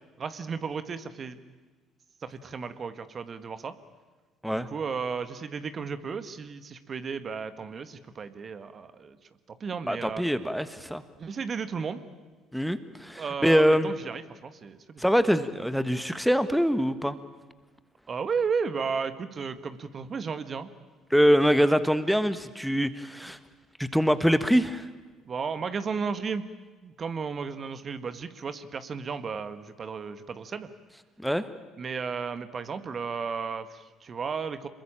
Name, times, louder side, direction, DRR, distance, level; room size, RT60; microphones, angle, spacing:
voice 1, 0.2-1.4 2.2-3.7 4.5-9.2 9.5-10.2 11.2-12.1 13.2-15.0 18.1-20.7 25.2-26.5 26.8-30.7 31.8-34.7, right 5 dB, 40° right, 11 dB, 1.7 m, -34 dB
voice 2, 9.9-11.0 12.5-13.9 15.0-17.2 21.1-23.4 23.8-24.9 31.2-31.4, equal, ahead, 12 dB, 1.5 m, -24 dB
26.5 x 21.5 x 9.0 m, 1.3 s
hypercardioid pair, 55°, 0 cm